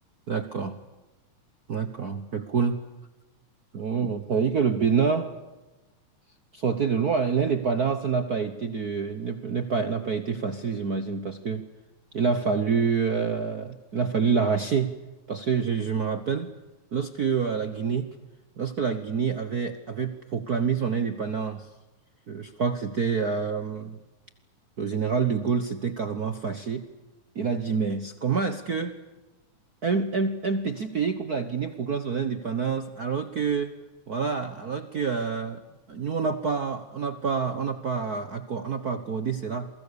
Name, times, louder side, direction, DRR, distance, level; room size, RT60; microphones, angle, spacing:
voice 1, 0.3-0.8 1.7-2.8 3.7-5.4 6.5-11.6 12.1-14.9 15.3-16.5 16.9-18.1 18.6-21.7 22.3-24.0 24.8-26.9 27.3-29.0 29.8-33.8 34.1-35.6 35.9-39.7, right 5 dB, 60° right, 10 dB, 1.0 m, -27 dB
29.0 x 23.5 x 7.0 m, 1.1 s
omnidirectional pair, 3.4 m